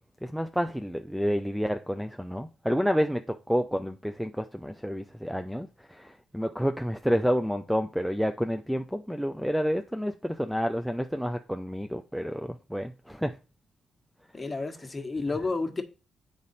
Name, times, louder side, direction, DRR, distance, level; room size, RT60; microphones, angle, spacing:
voice 1, 0.2-13.3, equal, ahead, 0.5 m, -29 dB
voice 2, 14.3-15.8, left 3 dB, 25° left, 1.4 m, -31 dB
7.0 x 5.3 x 4.1 m
supercardioid pair, 60°, 0 cm